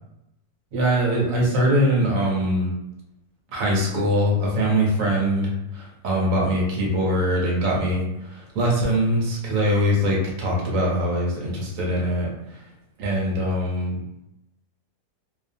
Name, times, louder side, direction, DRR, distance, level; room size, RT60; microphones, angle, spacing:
voice 1, 0.7-2.7 3.5-12.3 13.0-14.0, equal, 65° right, -2 dB, 1.1 m, -22 dB
2.7 x 2.2 x 2.6 m, 0.87 s
omnidirectional pair, 1.6 m